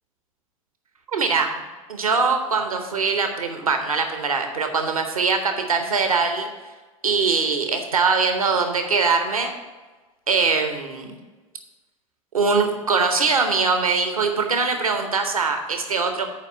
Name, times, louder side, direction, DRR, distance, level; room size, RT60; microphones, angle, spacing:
voice 1, 1.1-1.5 1.9-6.5 7.0-9.5 10.3-11.1 12.3-16.3, right 4 dB, 85° right, 5 dB, 0.8 m, -22 dB
8.3 x 4.7 x 6.7 m, 1.3 s
figure-of-eight pair, 80°, 18 cm